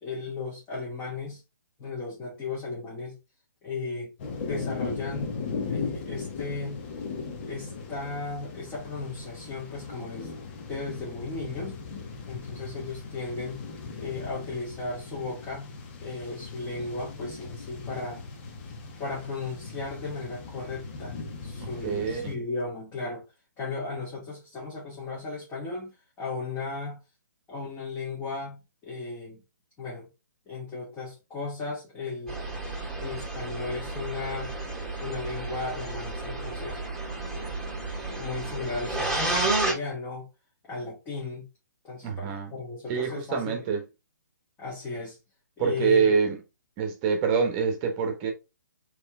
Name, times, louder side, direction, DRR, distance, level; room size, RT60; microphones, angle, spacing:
voice 1, 0.0-1.4 1.8-3.2 3.6-4.1 4.4-5.4 5.7-6.9 7.4-10.3 10.7-11.8 12.3-13.6 14.0-15.7 16.0-18.2 19.0-21.2 21.4-23.2 23.6-27.0 27.5-29.4 29.8-30.1 30.5-32.4 32.9-34.5 35.0-36.8 37.3-37.6 38.0-40.3 40.7-41.5 41.8-43.7 44.6-45.2 45.6-46.1, left 3 dB, 20° left, 1.8 m, -35 dB
sound 1, 4.2-22.4, left 4 dB, 35° left, 1.0 m, -38 dB
voice 2, 21.6-22.3 42.0-42.5 42.9-43.8 45.6-46.4 46.8-48.3, right 6 dB, 25° right, 1.2 m, -26 dB
sound 2, 32.3-39.7, right 2 dB, 5° left, 2.0 m, -31 dB
4.3 x 3.3 x 3.6 m
hypercardioid pair, 140°, 10 cm